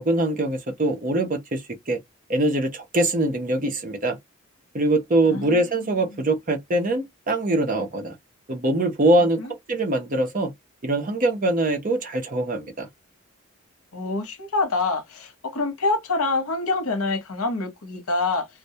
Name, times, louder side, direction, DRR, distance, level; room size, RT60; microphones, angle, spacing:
voice 1, 0.0-2.0 2.3-4.2 4.7-8.1 8.5-9.4 9.7-10.5 10.8-12.9, right 1 dB, 40° right, 0.6 m, -23 dB
voice 2, 5.3-5.6 6.1-6.2 9.4-9.5 13.9-18.5, left 3 dB, 85° left, 0.8 m, -26 dB
2.2 x 2.1 x 2.7 m
head